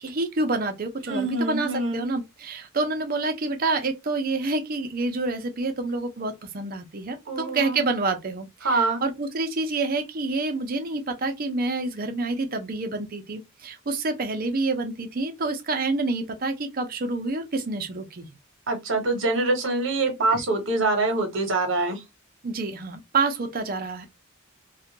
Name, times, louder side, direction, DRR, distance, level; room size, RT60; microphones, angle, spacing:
voice 1, 0.0-18.3 20.3-20.4 22.4-24.1, right 3 dB, 45° right, 0.5 m, -28 dB
voice 2, 1.1-2.0 7.3-7.8 8.6-9.0 18.7-22.0, right 2 dB, 65° right, 0.9 m, -25 dB
2.4 x 2.2 x 2.7 m
head